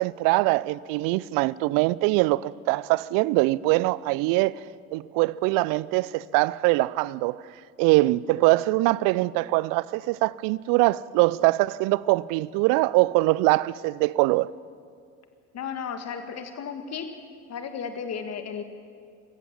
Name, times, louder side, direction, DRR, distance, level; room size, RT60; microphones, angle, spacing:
voice 1, 0.0-4.6 4.9-7.4 7.8-14.5, right 20 dB, 55° right, 0.6 m, -23 dB
voice 2, 15.5-17.2 17.5-18.6, left 6 dB, 40° left, 1.9 m, -34 dB
26.0 x 15.5 x 7.5 m
figure-of-eight pair, 60°, 40 cm